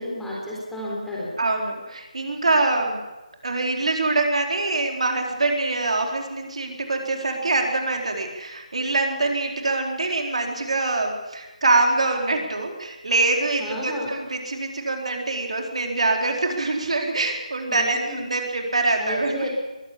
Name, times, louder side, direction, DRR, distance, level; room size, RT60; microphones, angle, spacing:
voice 1, 0.0-1.3 13.6-14.2 17.7-18.3 19.0-19.5, equal, 5° left, -6 dB, 4.0 m, -31 dB
voice 2, 1.4-3.0 3.4-19.5, right 2 dB, 55° right, 2 dB, 4.1 m, -24 dB
22.0 x 15.0 x 8.5 m, 1.1 s
figure-of-eight pair, 155°, 4 cm